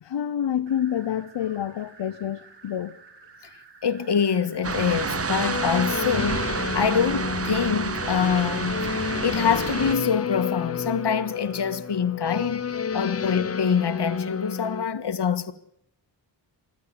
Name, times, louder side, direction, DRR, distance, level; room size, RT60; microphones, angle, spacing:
voice 1, 0.0-2.9, left 10 dB, 90° left, 0.9 m, -28 dB
sound 1, 0.7-8.5, right 5 dB, 75° right, 3.9 m, -51 dB
voice 2, 3.8-12.7 12.9-15.5, left 7 dB, 70° left, 1.7 m, -25 dB
sound 2, 4.6-10.0, right 5 dB, 35° right, 0.9 m, -29 dB
sound 3, 5.4-14.9, left 6 dB, 35° left, 0.8 m, -30 dB
24.0 x 15.5 x 8.5 m
wide cardioid pair, 90°, 43 cm